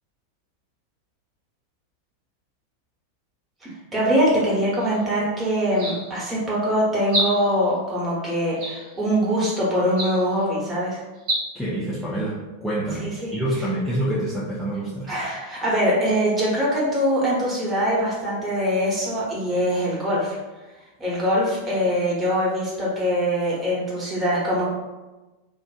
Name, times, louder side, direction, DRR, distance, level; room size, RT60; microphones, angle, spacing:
voice 1, 3.6-11.0 13.0-13.3 15.1-20.4 21.0-24.6, equal, 15° right, -7 dB, 1.0 m, -23 dB
sound 1, 4.8-5.0 5.7-6.3 7.1-7.7 8.6-9.1 9.9-10.4 11.2-11.4, right 1 dB, 45° right, 0.8 m, -29 dB
voice 2, 11.5-15.1, right 1 dB, 5° left, -8 dB, 0.4 m, -27 dB
2.4 x 2.1 x 2.4 m, 1.1 s
figure-of-eight pair, 90°, 0 cm